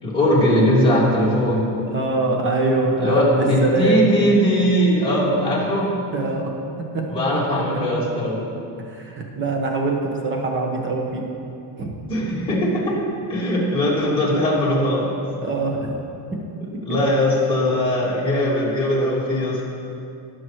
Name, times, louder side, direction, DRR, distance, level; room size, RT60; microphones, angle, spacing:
voice 1, 0.0-1.7 3.0-5.9 7.1-8.4 12.1-12.9 13.3-15.1 16.8-19.6, equal, 10° left, -7 dB, 2.1 m, -20 dB
voice 2, 1.9-4.1 6.1-6.5 6.9-7.1 7.5-7.8 8.9-11.3 11.8-11.9 15.4-15.9 16.3-16.4, right 3 dB, 25° right, 1 dB, 1.1 m, -23 dB
18.0 x 6.1 x 3.1 m, 2.6 s
cardioid pair, 175°, 44 cm